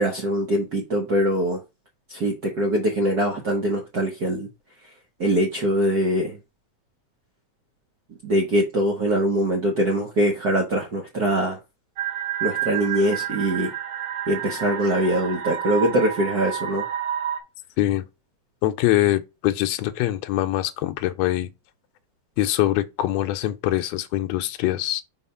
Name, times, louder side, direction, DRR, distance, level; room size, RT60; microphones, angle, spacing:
voice 1, 0.0-1.6 2.1-4.5 4.8-4.9 5.2-6.4 8.2-11.6 12.4-13.7 14.3-16.9, right 1 dB, 90° right, 0.8 m, -23 dB
sound 1, 12.0-17.4, right 10 dB, 65° right, 1.4 m, -29 dB
voice 2, 18.6-21.5 22.4-25.0, left 14 dB, 75° left, 1.7 m, -23 dB
4.2 x 4.0 x 5.6 m
omnidirectional pair, 3.3 m